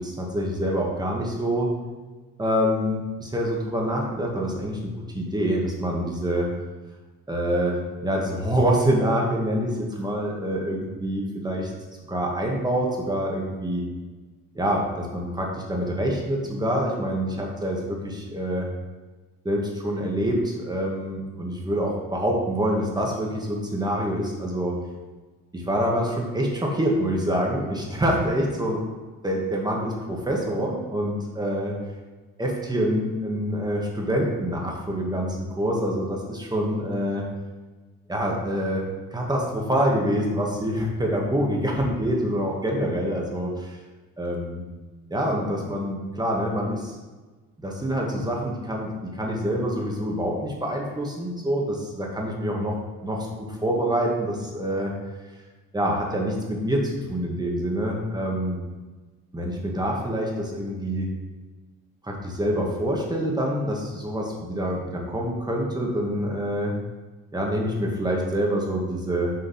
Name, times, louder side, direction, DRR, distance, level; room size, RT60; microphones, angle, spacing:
voice 1, 0.0-1.7 2.4-6.5 7.3-11.7 12.0-13.8 14.6-18.7 19.5-24.8 25.5-28.8 29.2-31.8 32.4-37.3 38.1-43.8 44.2-44.7 45.1-47.0 47.6-52.8 53.0-54.9 55.7-58.6 59.3-61.1 62.0-66.7 67.3-69.3, equal, 15° right, -1 dB, 1.8 m, -26 dB
6.7 x 3.9 x 5.8 m, 1.3 s
cardioid pair, 90°, 30 cm